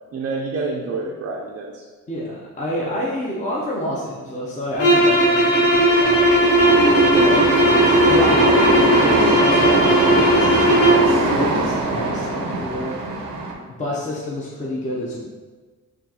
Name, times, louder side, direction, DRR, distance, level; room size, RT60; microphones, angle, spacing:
voice 1, 0.1-1.8 7.1-7.4, right 3 dB, 45° right, -1 dB, 0.4 m, -27 dB
voice 2, 2.1-6.2 7.2-7.4 8.1-13.0 13.7-15.2, left 1 dB, 25° left, -4 dB, 0.5 m, -28 dB
sound 1, 4.7-11.1, equal, 45° left, 0.9 m, -16 dB
sound 2, 5.6-13.5, right 2 dB, 85° right, 0.6 m, -21 dB
4.4 x 2.4 x 2.7 m, 1.4 s
cardioid pair, 105°, 32 cm